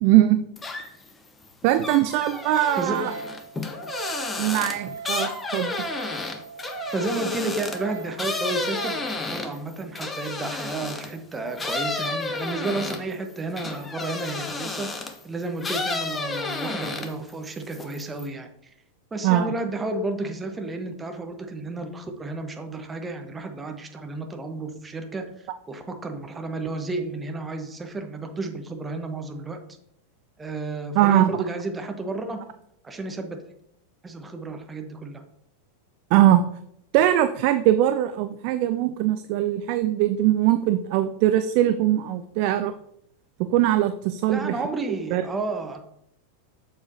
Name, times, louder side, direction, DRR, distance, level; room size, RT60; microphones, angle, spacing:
voice 1, 0.0-0.4 1.6-3.1 4.4-5.7 19.2-19.5 31.0-31.3 36.1-36.4 36.9-42.7 43.5-44.6 45.1-45.3, right 13 dB, 45° right, 10 dB, 0.3 m, -21 dB
sound 1, 0.6-1.1 1.4-11.2 11.6-15.2 15.6-17.3 17.6-18.3, left 3 dB, 15° left, 0.8 m, -31 dB
voice 2, 2.8-3.2 6.9-18.5 19.1-29.6 30.4-32.5 32.8-33.4 34.0-35.2 44.3-45.8, right 2 dB, 15° right, 5 dB, 1.0 m, -32 dB
Wind instrument woodwind instrument, 3.0-9.2, right 5 dB, 75° right, 1.6 m, -39 dB
7.1 x 6.7 x 2.7 m, 0.74 s
figure-of-eight pair, 90°, 0 cm